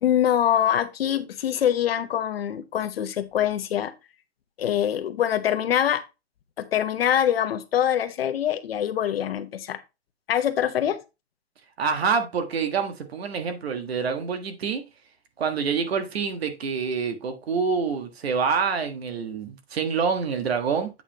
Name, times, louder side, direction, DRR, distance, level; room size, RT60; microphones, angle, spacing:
voice 1, 0.0-3.9 4.6-6.0 6.6-9.8 10.3-11.0, left 10 dB, 65° left, 0.9 m, -24 dB
voice 2, 11.8-14.8 15.4-20.9, right 5 dB, 70° right, 1.6 m, -26 dB
8.1 x 5.6 x 2.9 m
hypercardioid pair, 170°, 32 cm